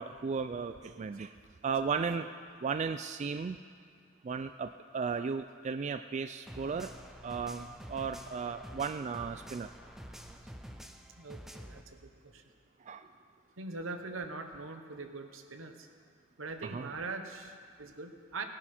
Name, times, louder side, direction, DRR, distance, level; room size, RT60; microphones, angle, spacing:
voice 1, 0.0-1.3 1.6-2.2 2.6-3.6 4.2-6.9 7.2-9.7 12.9-13.1 16.6-16.9, right 5 dB, 35° right, 9 dB, 0.3 m, -35 dB
voice 2, 0.6-1.1 1.8-2.1 11.2-12.4 13.6-15.9 16.4-18.4, right 3 dB, 80° right, 6 dB, 1.1 m, -42 dB
sound 1, 6.5-11.8, equal, ahead, 0.7 m, -48 dB
18.5 x 11.0 x 4.4 m, 2.1 s
head